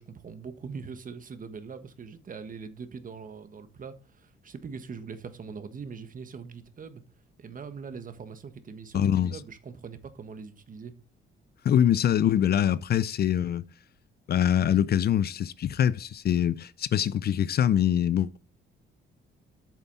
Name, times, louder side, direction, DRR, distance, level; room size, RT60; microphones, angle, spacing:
voice 1, 0.0-7.0 7.4-10.9, right 5 dB, 45° right, 1.5 m, -42 dB
voice 2, 8.9-9.4 11.6-13.6 14.3-18.4, left 10 dB, 50° left, 0.5 m, -24 dB
8.4 x 7.2 x 4.1 m
cardioid pair, 90°, 20 cm